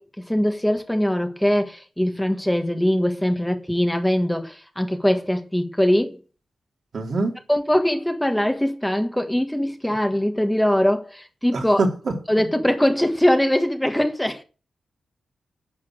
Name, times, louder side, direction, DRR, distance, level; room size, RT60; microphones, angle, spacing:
voice 1, 0.0-6.2 7.5-11.8 12.3-14.4, equal, 5° left, 1.5 m, -22 dB
voice 2, 6.9-7.4 11.5-12.5, right 3 dB, 55° right, 3.2 m, -25 dB
11.0 x 7.2 x 8.8 m
wide cardioid pair, 145°, 0 cm